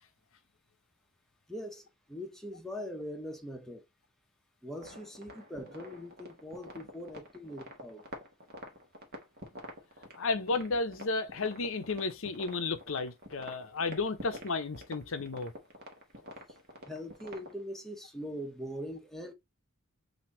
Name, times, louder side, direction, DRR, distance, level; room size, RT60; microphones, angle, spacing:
voice 1, 1.5-3.8 4.6-8.0 16.9-19.3, equal, ahead, 0.9 m, -42 dB
sound 1, 4.8-17.6, equal, 45° right, 1.3 m, -47 dB
voice 2, 10.2-15.5, left 3 dB, 65° left, 0.7 m, -33 dB
5.9 x 2.8 x 3.0 m
head